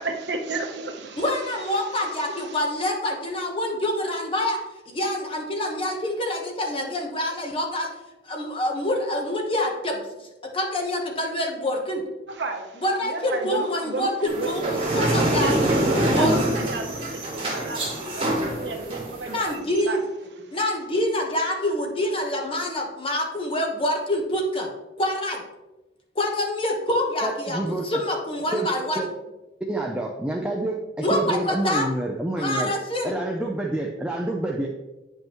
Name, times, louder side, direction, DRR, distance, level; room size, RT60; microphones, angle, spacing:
voice 1, 0.0-2.6 12.3-20.0 20.4-20.6, right 3 dB, 70° right, 3 dB, 1.0 m, -33 dB
voice 2, 1.2-4.6 4.9-7.9 8.2-10.0 10.5-12.0 12.8-14.6 14.9-15.5 15.9-16.4 17.6-17.7 19.3-20.0 20.5-24.7 25.0-25.4 26.1-29.1 31.0-31.9 32.4-33.1, left 1 dB, 30° left, 1 dB, 1.1 m, -26 dB
sound 1, 14.3-19.5, right 1 dB, 30° right, 1.6 m, -25 dB
voice 3, 27.2-27.8 28.5-28.7 29.0-29.1 29.7-32.7 33.0-34.7, right 1 dB, 5° right, -1 dB, 0.5 m, -27 dB
8.8 x 5.5 x 3.0 m, 1.1 s
head